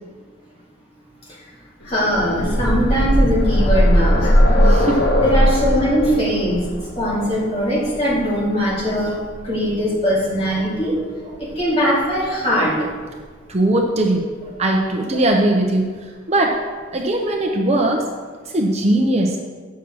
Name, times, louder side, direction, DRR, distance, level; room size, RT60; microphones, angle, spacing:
sound 1, 1.9-9.7 10.9-11.0 11.3-11.4, equal, 50° left, 1.1 m, -18 dB
voice 1, 1.9-4.6 5.2-6.6 7.0-9.1 9.4-10.9 11.6-12.9, equal, 30° left, -6 dB, 2.3 m, -20 dB
voice 2, 4.6-5.0 7.1-7.2 7.9-8.0 9.1-9.2 9.5-9.6 10.8-10.9 13.5-15.9 16.3-16.6 16.9-18.1 18.5-19.4, right 1 dB, 30° right, 1 dB, 0.7 m, -20 dB
7.5 x 5.5 x 6.1 m, 1.5 s
head